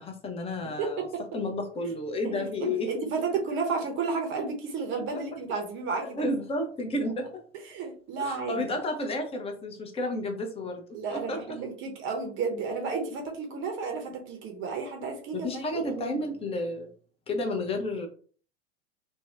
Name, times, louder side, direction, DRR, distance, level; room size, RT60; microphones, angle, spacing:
voice 1, 0.0-1.1 1.3-2.9 5.1-5.2 6.2-7.4 8.2-10.9 11.1-11.6 15.3-16.9 17.3-18.1, left 1 dB, 15° left, 4 dB, 0.7 m, -31 dB
voice 2, 0.8-1.2 2.2-6.2 7.7-8.6 10.9-16.2, right 4 dB, 35° right, 3 dB, 0.7 m, -32 dB
2.6 x 2.2 x 3.2 m, 0.43 s
hypercardioid pair, 95°, 36 cm